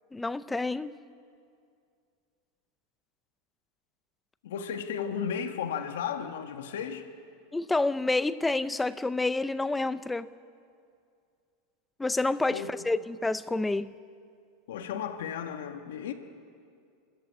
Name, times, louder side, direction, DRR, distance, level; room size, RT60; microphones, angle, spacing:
voice 1, 0.1-0.9 7.5-10.3 12.0-13.9, left 2 dB, 5° left, 0.5 m, -28 dB
voice 2, 4.4-7.0 12.5-12.9 14.7-16.1, left 7 dB, 90° left, 1.7 m, -34 dB
29.5 x 13.5 x 8.4 m
supercardioid pair, 155°, 0 cm